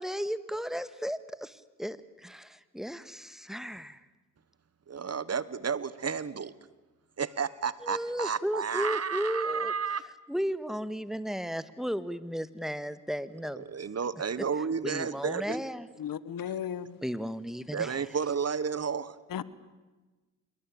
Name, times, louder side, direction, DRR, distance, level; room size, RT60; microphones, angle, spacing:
voice 1, 0.0-4.0 7.8-9.7 10.3-13.6 14.4-14.5 14.8-15.9 17.0-18.0, equal, ahead, 14 dB, 1.7 m, -34 dB
voice 2, 4.9-6.5 7.2-10.0 13.6-15.6 17.7-19.2, right 6 dB, 50° right, 18 dB, 1.3 m, -32 dB
voice 3, 16.0-17.0 19.3-19.4, left 9 dB, 85° left, 18 dB, 1.2 m, -35 dB
26.5 x 22.5 x 8.7 m, 1.2 s
cardioid pair, 60°, 33 cm